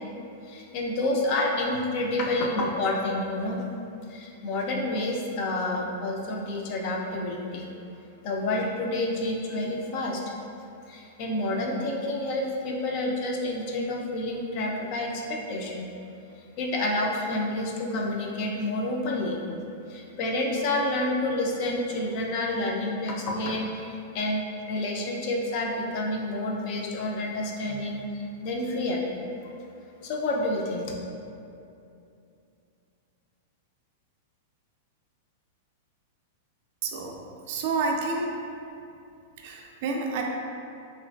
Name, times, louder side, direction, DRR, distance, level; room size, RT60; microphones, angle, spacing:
voice 1, 0.4-3.6 4.1-7.7 8.2-10.2 10.9-15.9 16.6-19.4 19.9-24.4 24.7-29.1 30.0-30.9, left 1 dB, 40° left, 0 dB, 0.3 m, -29 dB
voice 2, 36.8-37.1 37.5-38.3 39.4-40.2, right 4 dB, 50° right, 1 dB, 0.3 m, -29 dB
3.0 x 2.4 x 2.2 m, 2.6 s
supercardioid pair, 160°, 0 cm